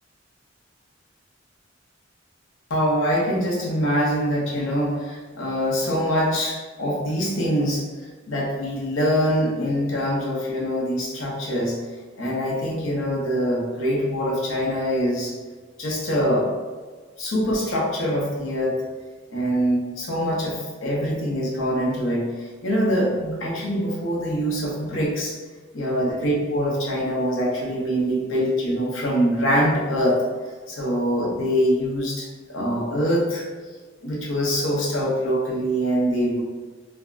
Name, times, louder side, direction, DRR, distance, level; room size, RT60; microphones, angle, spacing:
voice 1, 2.7-7.8 8.3-11.7 12.2-15.3 15.8-16.5 17.2-18.8 19.3-25.4 25.7-30.2 30.7-33.4 34.0-36.4, equal, 90° left, -4 dB, 0.7 m, -24 dB
3.3 x 2.1 x 2.4 m, 1.4 s
head